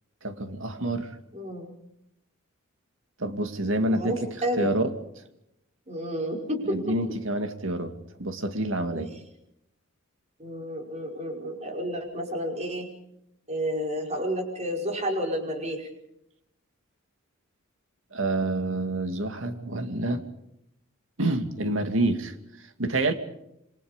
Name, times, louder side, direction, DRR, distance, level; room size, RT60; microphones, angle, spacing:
voice 1, 0.2-1.1 3.2-4.2 4.6-4.9 6.6-7.9 8.2-9.1 18.1-20.2 21.2-22.3 22.8-23.1, right 1 dB, 65° right, 7 dB, 2.5 m, -27 dB
voice 2, 1.3-1.7 3.9-4.7 5.9-7.0 8.9-9.0 10.4-12.9 13.5-15.9, equal, 35° right, 2 dB, 5.4 m, -31 dB
28.0 x 24.0 x 5.2 m, 0.80 s
head